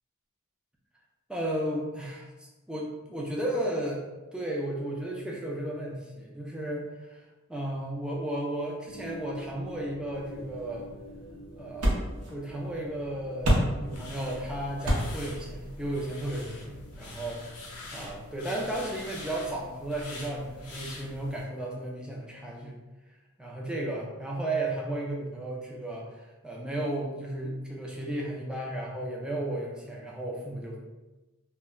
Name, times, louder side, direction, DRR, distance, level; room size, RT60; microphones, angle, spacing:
voice 1, 1.3-4.0 4.3-7.2 7.5-10.9 11.6-12.0 12.3-17.4 17.9-22.8 23.4-30.8, right 1 dB, 5° right, -2 dB, 0.4 m, -34 dB
sound 1, 8.9-19.5, equal, 35° right, 0.8 m, -49 dB
sound 2, 10.1-17.2, equal, 85° right, 0.7 m, -32 dB
sound 3, 13.9-21.4, left 2 dB, 85° left, 0.6 m, -44 dB
2.1 x 2.1 x 3.6 m, 1.1 s
head